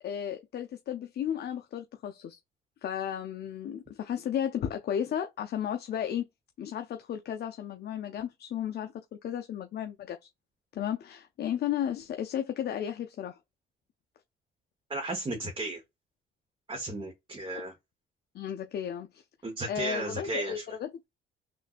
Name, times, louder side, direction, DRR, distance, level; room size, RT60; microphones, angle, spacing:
voice 1, 0.0-2.4 2.8-6.2 6.6-8.9 9.2-10.2 10.7-13.4 18.3-19.2 19.7-21.1, left 9 dB, 55° left, 0.5 m, -34 dB
voice 2, 14.9-15.8 16.7-17.7 19.4-20.6, right 2 dB, 25° right, 1.0 m, -34 dB
3.6 x 2.5 x 2.4 m
cardioid pair, 90°, 20 cm